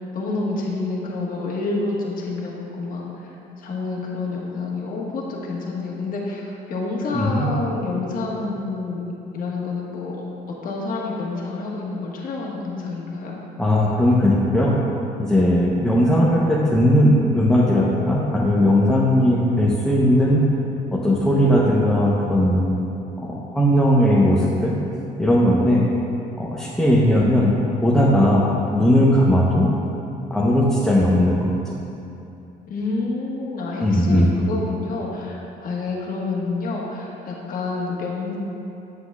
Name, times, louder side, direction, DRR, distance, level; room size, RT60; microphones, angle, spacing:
voice 1, 0.1-3.1 3.6-9.0 9.3-13.3 32.7-38.4, left 3 dB, 55° left, -3 dB, 1.4 m, -28 dB
voice 2, 7.1-7.5 13.6-14.7 15.2-20.4 20.9-22.6 23.2-24.7 25.2-25.8 26.4-27.5 27.8-29.7 30.3-31.5 33.8-34.3, equal, 5° left, -7 dB, 0.8 m, -18 dB
8.0 x 7.8 x 2.3 m, 2.8 s
cardioid pair, 110°, 17 cm